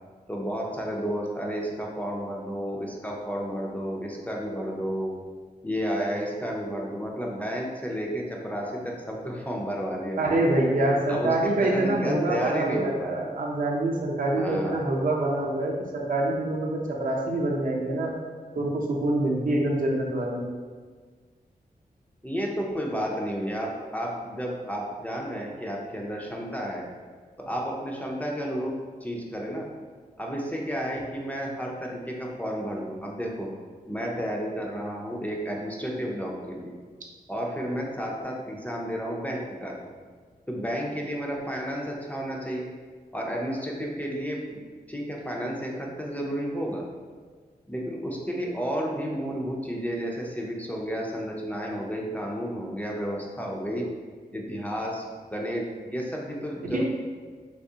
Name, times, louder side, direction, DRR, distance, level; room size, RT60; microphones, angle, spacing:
voice 1, 0.3-5.1 5.6-10.5 11.1-13.1 14.4-14.8 22.2-26.9 27.4-28.7 29.0-29.7 30.2-33.5 33.9-36.7 37.3-39.9 40.5-42.7 43.1-44.6 44.9-46.8 47.7-53.8 54.3-55.0 55.3-56.8, equal, 10° left, -2 dB, 0.4 m, -32 dB
voice 2, 10.2-18.1 18.5-20.5 56.7-56.8, right 1 dB, 60° right, -2 dB, 0.6 m, -25 dB
3.4 x 3.1 x 2.7 m, 1.5 s
wide cardioid pair, 150°, 16 cm